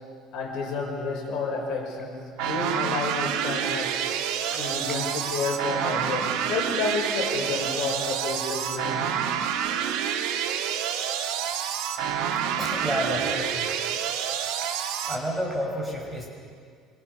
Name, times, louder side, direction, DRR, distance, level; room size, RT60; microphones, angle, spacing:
voice 1, 0.3-4.0 4.6-9.0, left 4 dB, 60° left, 1 dB, 5.5 m, -30 dB
sound 1, 2.4-15.2, right 8 dB, 85° right, 2.0 m, -28 dB
voice 2, 12.6-13.7 15.0-16.3, equal, 5° right, -2 dB, 5.9 m, -30 dB
26.0 x 25.0 x 6.8 m, 2.1 s
cardioid pair, 150°, 0 cm